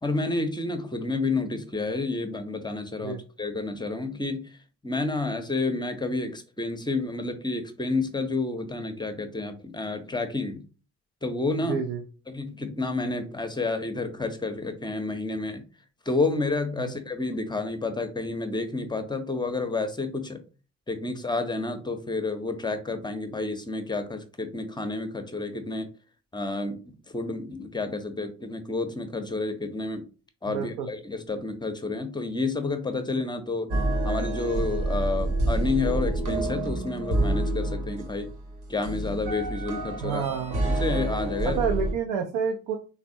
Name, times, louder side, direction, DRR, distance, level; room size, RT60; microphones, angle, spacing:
voice 1, 0.0-4.6 4.8-10.6 11.2-11.8 12.3-15.6 16.1-20.4 20.9-25.9 26.3-26.8 27.1-30.0 30.4-33.7 34.0-38.3 38.7-40.2 40.6-41.6, left 3 dB, 10° left, 7 dB, 0.5 m, -30 dB
voice 2, 11.6-12.0 16.8-16.9 30.5-30.9 40.0-40.6 41.4-42.8, right 6 dB, 75° right, 3 dB, 0.5 m, -29 dB
sound 1, 33.7-41.9, right 2 dB, 60° right, 0.9 m, -28 dB
3.3 x 2.2 x 2.5 m, 0.36 s
hypercardioid pair, 40°, 43 cm